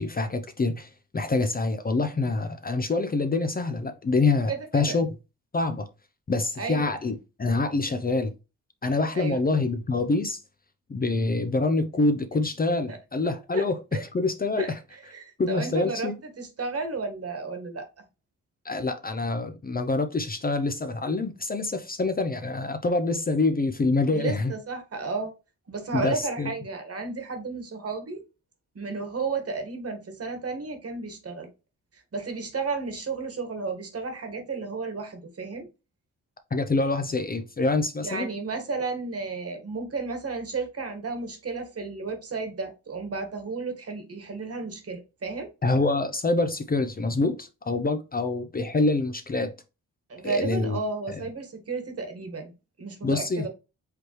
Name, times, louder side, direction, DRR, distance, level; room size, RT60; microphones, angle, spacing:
voice 1, 0.0-5.1 5.5-5.9 6.3-8.3 8.8-10.4 10.9-14.8 15.4-16.1 18.6-24.5 25.9-26.5 36.5-38.3 45.6-49.5 50.2-50.8 51.1-51.2 53.0-53.5, left 3 dB, 30° left, 0.6 m, -26 dB
voice 2, 4.5-5.0 6.6-6.8 9.1-9.4 12.9-13.0 13.5-13.7 13.9-14.0 14.6-14.7 15.1-16.1 16.4-17.9 24.1-25.3 25.7-28.2 28.7-31.5 32.1-35.7 38.0-45.5 50.1-52.5 52.8-53.5, right 4 dB, 45° right, 1.5 m, -33 dB
5.0 x 3.1 x 3.0 m
cardioid pair, 80°, 32 cm